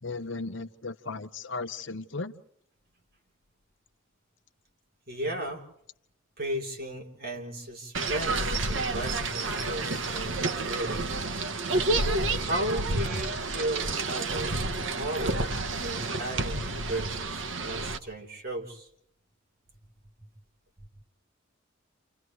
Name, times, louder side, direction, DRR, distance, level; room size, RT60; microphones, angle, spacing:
voice 1, 0.0-2.3, left 3 dB, 65° left, 9 dB, 0.9 m, -36 dB
voice 2, 5.1-5.7 6.4-11.2 12.3-14.5 15.0-15.5 15.8-18.9 20.8-20.9, right 1 dB, 50° right, 1 dB, 3.7 m, -35 dB
sound 1, 7.9-18.0, right 2 dB, 70° right, 1.2 m, -30 dB
29.0 x 29.0 x 3.1 m, 0.68 s
head